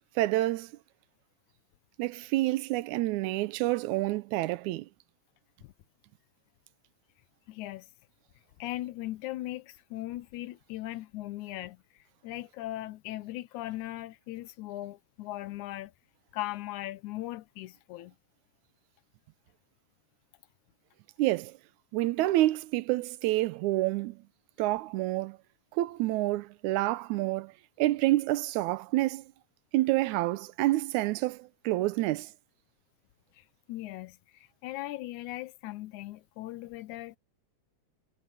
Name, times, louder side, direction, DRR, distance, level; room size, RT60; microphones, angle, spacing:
voice 1, 0.2-0.7 2.0-4.9 21.2-21.6 21.9-24.2 24.6-25.4 25.7-27.5 27.8-29.2 29.7-32.3, right 17 dB, 80° right, 2.0 m, -28 dB
voice 2, 7.5-7.9 8.6-15.9 16.3-18.2 33.4-37.2, left 16 dB, 75° left, 2.1 m, -39 dB
omnidirectional pair, 3.6 m